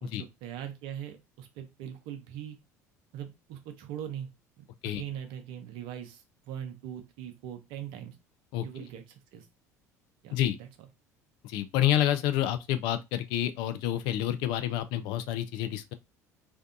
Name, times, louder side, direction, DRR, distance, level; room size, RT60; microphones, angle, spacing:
voice 1, 0.0-2.6 3.1-4.3 4.6-8.1 8.6-9.5 10.2-10.9, right 10 dB, 60° right, 0.6 m, -41 dB
voice 2, 11.4-15.9, left 12 dB, 60° left, 0.3 m, -28 dB
2.5 x 2.2 x 2.5 m
hypercardioid pair, 65°, 9 cm